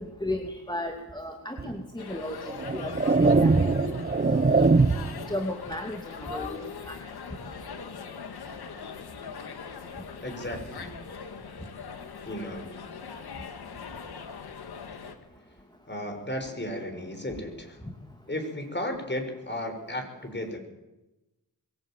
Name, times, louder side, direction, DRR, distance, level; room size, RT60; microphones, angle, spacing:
voice 1, 0.0-2.4 2.7-3.1 3.4-3.9 4.3-4.7 5.3-7.1, left 1 dB, 10° left, 3 dB, 2.6 m, -35 dB
sound 1, 1.6-1.7 2.5-5.2, right 3 dB, 25° right, 1.0 m, -22 dB
sound 2, 2.0-15.1, left 6 dB, 85° left, 2.3 m, -41 dB
voice 2, 10.2-10.9 12.2-12.7 15.9-17.8 18.3-20.6, left 1 dB, 30° left, 6 dB, 6.4 m, -34 dB
22.5 x 16.5 x 9.2 m, 1.0 s
cardioid pair, 55°, 37 cm